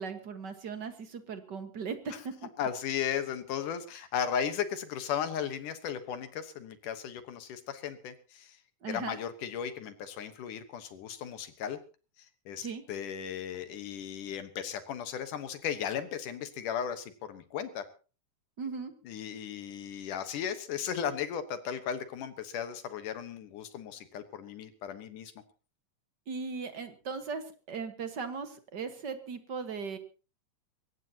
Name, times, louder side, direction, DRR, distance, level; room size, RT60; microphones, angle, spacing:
voice 1, 0.0-2.5 8.8-9.2 12.6-12.8 18.6-18.9 26.3-30.0, right 5 dB, 45° right, 8 dB, 1.5 m, -38 dB
voice 2, 2.6-8.6 8.9-11.8 12.5-17.9 19.0-25.3, left 8 dB, 75° left, 10 dB, 2.7 m, -36 dB
23.0 x 17.5 x 2.9 m, 0.35 s
omnidirectional pair, 3.8 m